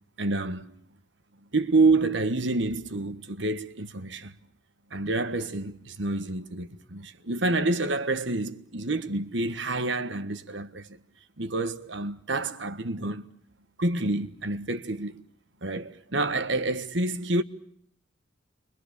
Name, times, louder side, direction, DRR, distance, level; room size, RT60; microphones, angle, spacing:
voice 1, 0.2-0.7 1.5-4.3 4.9-11.0 11.4-13.3 13.8-15.2 15.6-17.4, right 2 dB, 70° right, 1.4 m, -28 dB
29.5 x 24.0 x 6.7 m
head